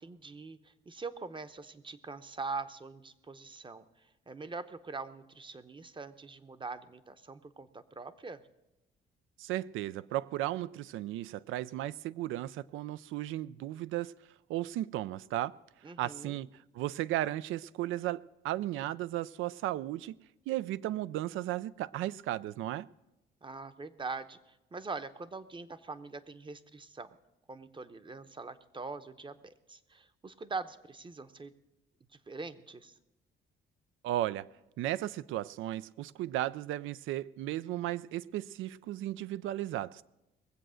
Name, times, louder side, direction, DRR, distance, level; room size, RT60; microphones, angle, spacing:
voice 1, 0.0-3.8 4.3-8.4 15.8-16.4 23.4-27.1 27.5-31.5 32.3-33.0, right 4 dB, 25° right, 0.8 m, -43 dB
voice 2, 9.4-14.1 14.5-15.5 15.8-16.5 16.7-20.2 20.5-22.9 34.0-34.5 34.8-40.0, right 14 dB, 85° right, 0.4 m, -35 dB
20.0 x 7.8 x 6.3 m
cardioid pair, 90°, 20 cm